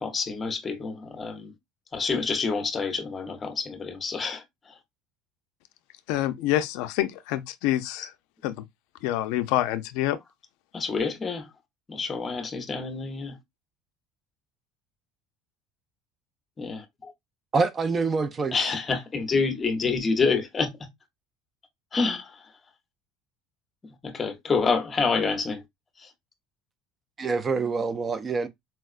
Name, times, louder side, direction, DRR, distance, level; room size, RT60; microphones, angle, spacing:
voice 1, 0.0-1.5 1.9-4.4 10.7-11.5 11.9-13.4 16.6-17.1 18.5-20.7 21.9-22.4 24.0-25.6 26.0-26.1, left 4 dB, 20° left, 0.6 m, -27 dB
voice 2, 6.1-8.1 8.4-8.6 9.0-10.2, left 14 dB, 80° left, 0.4 m, -27 dB
voice 3, 17.5-18.7 27.2-28.5, right 4 dB, 20° right, 0.3 m, -26 dB
4.3 x 2.1 x 2.4 m
cardioid pair, 160°, 0 cm